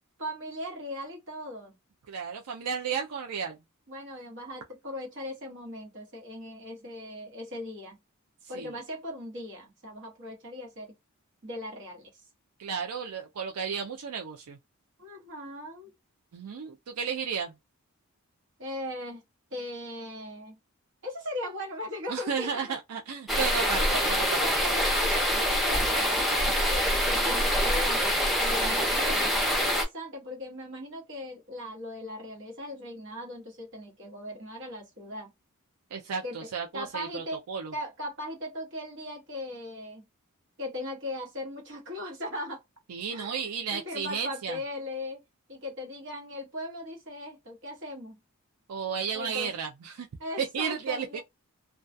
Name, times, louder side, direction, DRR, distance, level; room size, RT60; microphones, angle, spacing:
voice 1, 0.2-1.8 3.9-8.0 8.5-10.9 11.4-12.1 15.0-15.9 18.6-19.2 19.5-20.6 21.0-22.7 23.7-24.0 24.4-28.0 28.4-35.3 36.2-36.5 36.7-37.4 37.7-40.0 40.6-42.6 43.1-43.4 43.7-45.2 45.5-48.2 49.1-49.5 50.2-51.2, left 1 dB, 60° right, 1.2 m, -38 dB
voice 2, 2.1-3.6 8.5-8.7 12.6-14.6 16.3-17.5 22.1-24.4 35.9-37.7 42.9-44.6 48.7-50.1 50.5-51.2, right 6 dB, 85° right, 0.5 m, -33 dB
sound 1, 23.3-29.8, equal, ahead, 0.6 m, -25 dB
2.3 x 2.2 x 2.5 m
head